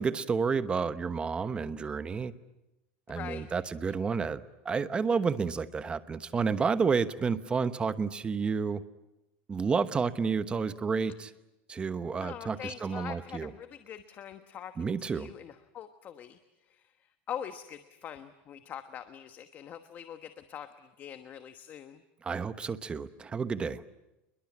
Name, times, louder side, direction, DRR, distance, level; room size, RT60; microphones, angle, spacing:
voice 1, 0.0-2.3 3.1-8.8 9.5-11.3 11.7-13.5 14.8-15.3 22.2-23.8, right 5 dB, 15° right, 12 dB, 1.0 m, -30 dB
voice 2, 3.1-3.5 12.2-16.4 16.7-22.0, left 9 dB, 30° left, 9 dB, 1.2 m, -43 dB
28.5 x 21.5 x 8.6 m, 0.97 s
supercardioid pair, 150°, 6 cm